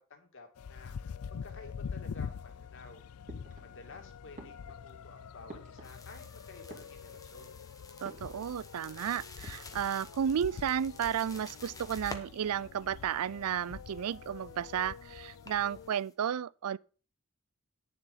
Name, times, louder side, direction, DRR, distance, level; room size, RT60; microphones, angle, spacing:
voice 1, 0.1-3.1 3.6-7.6, left 3 dB, 60° left, 2.7 m, -53 dB
sound 1, 0.6-15.9, left 6 dB, 80° left, 0.4 m, -45 dB
sound 2, 3.3-4.0 4.3-6.3 6.6-7.4 8.0-8.6 8.9-9.0 9.3-10.0, right 2 dB, 35° right, 2.5 m, -52 dB
sound 3, 5.8-16.1, left 3 dB, 15° left, 1.2 m, -52 dB
voice 2, 8.0-16.8, right 8 dB, 80° right, 0.4 m, -33 dB
9.8 x 7.1 x 5.6 m
head